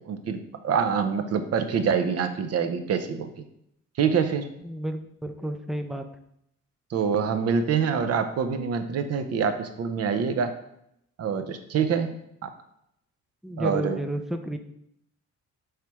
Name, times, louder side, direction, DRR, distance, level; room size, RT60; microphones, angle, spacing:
voice 1, 0.0-3.3 4.0-4.4 6.9-10.5 11.2-12.1 12.4-12.5 13.6-14.0, right 6 dB, 55° right, 8 dB, 0.6 m, -25 dB
voice 2, 4.6-6.1 13.4-14.6, right 1 dB, ahead, 7 dB, 0.3 m, -31 dB
3.3 x 2.9 x 4.6 m, 0.75 s
cardioid pair, 90°, 30 cm